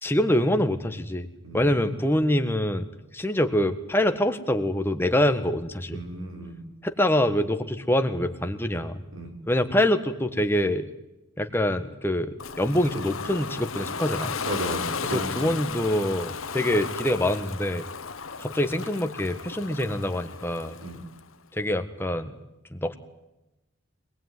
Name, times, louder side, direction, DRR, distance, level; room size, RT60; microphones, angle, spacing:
voice 1, 0.0-1.3 1.5-2.9 3.1-6.0 6.8-9.0 9.5-10.9 11.4-14.3 15.0-17.8 18.4-20.8 21.5-22.3 22.7-22.9, left 1 dB, 10° left, 7 dB, 1.6 m, -25 dB
voice 2, 1.4-1.9 5.9-6.7 9.1-9.3 14.4-15.5 20.8-21.0, right 1 dB, 80° right, 3 dB, 6.2 m, -34 dB
Ocean, 12.4-21.2, left 5 dB, 80° left, 1.3 m, -35 dB
25.0 x 20.0 x 9.6 m, 0.97 s
head